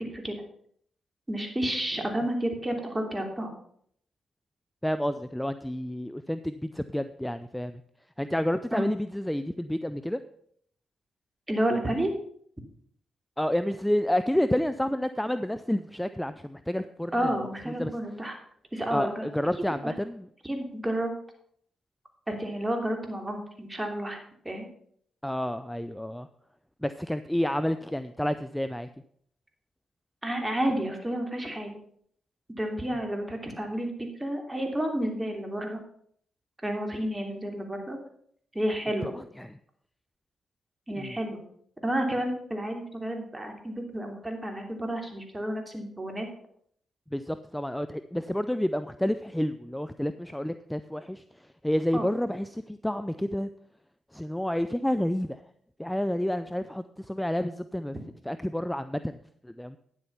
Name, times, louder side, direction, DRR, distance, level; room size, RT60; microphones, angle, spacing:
voice 1, 1.3-3.5 8.7-8.8 11.5-12.1 17.1-18.4 18.7-19.2 20.4-21.1 22.3-24.2 24.4-24.7 30.2-31.8 32.6-35.8 36.6-38.0 38.5-39.1 40.9-41.4 41.8-46.3 51.9-52.1, right 1 dB, 20° right, 3 dB, 3.1 m, -30 dB
voice 2, 4.8-7.8 8.2-10.2 13.4-17.3 17.7-17.9 18.9-20.3 25.2-26.3 26.8-28.9 39.0-39.6 41.0-41.2 47.1-53.5 54.1-55.4 55.8-57.9 58.2-59.2 59.4-59.8, equal, 5° left, 12 dB, 0.6 m, -29 dB
9.8 x 7.8 x 5.7 m, 0.65 s
hypercardioid pair, 40°, 0 cm